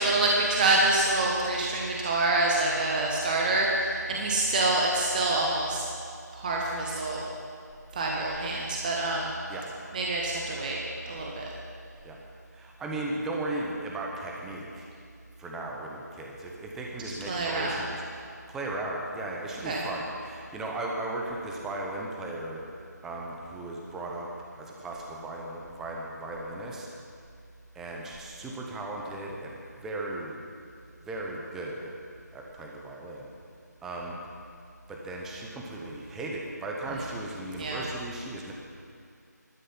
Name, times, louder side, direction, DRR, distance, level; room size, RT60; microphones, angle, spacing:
voice 1, 0.0-5.8 6.3-7.2 7.9-9.3 9.9-10.8 11.0-11.5 17.3-17.7 19.6-19.8 37.6-37.8, right 2 dB, 25° right, -2 dB, 1.4 m, -26 dB
voice 2, 12.5-14.9 15.4-18.0 18.5-22.6 23.0-24.3 24.6-26.9 27.7-30.4 31.0-31.9 32.3-33.3 33.8-34.2 34.9-38.5, right 2 dB, 5° right, -1 dB, 0.8 m, -36 dB
15.0 x 12.0 x 5.6 m, 2.3 s
figure-of-eight pair, 160°, 10 cm